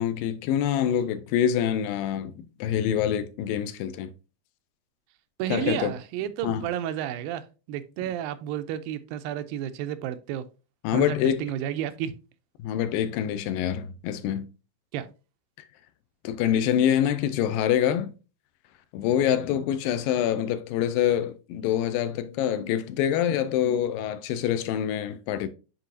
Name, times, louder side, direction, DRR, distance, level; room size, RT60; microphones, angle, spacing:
voice 1, 0.0-4.1 5.5-5.9 6.4-6.7 10.8-11.5 12.6-14.5 16.2-18.1 18.9-25.5, left 10 dB, 85° left, 2.3 m, -25 dB
voice 2, 5.4-10.5 10.9-12.1 14.9-15.1, right 11 dB, 90° right, 2.4 m, -31 dB
9.7 x 3.8 x 2.7 m
omnidirectional pair, 4.1 m